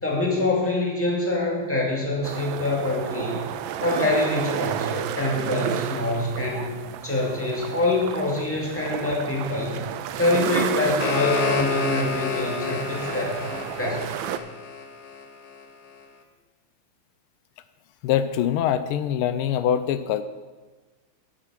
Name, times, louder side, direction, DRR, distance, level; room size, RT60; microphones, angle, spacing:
voice 1, 0.0-3.5 3.8-6.8 7.0-9.9 10.1-14.2, left 2 dB, 5° left, -3 dB, 2.0 m, -25 dB
sound 1, 2.2-14.4, right 10 dB, 75° right, 1.3 m, -31 dB
sound 2, 10.6-15.6, left 5 dB, 60° left, 1.4 m, -30 dB
voice 2, 18.0-20.2, left 10 dB, 85° left, 12 dB, 1.5 m, -23 dB
9.1 x 8.4 x 6.3 m, 1.3 s
omnidirectional pair, 2.3 m